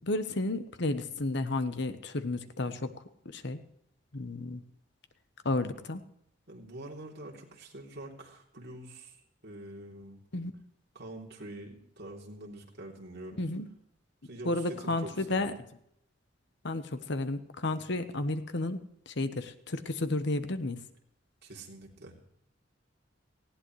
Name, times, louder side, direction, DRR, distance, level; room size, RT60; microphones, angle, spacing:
voice 1, 0.0-2.9 3.2-3.6 4.1-4.6 5.4-6.0 10.3-10.5 13.3-13.7 14.4-15.5 16.6-20.8, left 2 dB, 65° left, 10 dB, 1.1 m, -32 dB
voice 2, 6.5-9.2 9.4-10.2 10.9-13.4 14.2-15.6 21.4-22.1, right 1 dB, 60° right, -1 dB, 3.3 m, -45 dB
19.0 x 15.5 x 3.2 m, 0.78 s
head